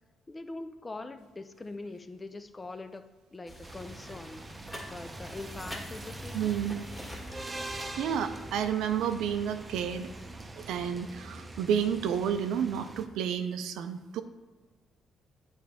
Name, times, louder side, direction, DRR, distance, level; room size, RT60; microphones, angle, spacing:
voice 1, 0.3-3.0 3.3-4.4 4.9-6.5, left 2 dB, 25° left, 9 dB, 0.5 m, -42 dB
sound 1, 3.5-8.7, equal, ahead, 1.8 m, -47 dB
sound 2, 3.6-13.1, right 1 dB, 20° right, 0.7 m, -43 dB
voice 2, 6.3-6.8 8.0-10.1 10.6-14.2, right 8 dB, 85° right, 9 dB, 0.5 m, -30 dB
9.0 x 3.4 x 5.0 m, 1.3 s
cardioid pair, 90°, 0 cm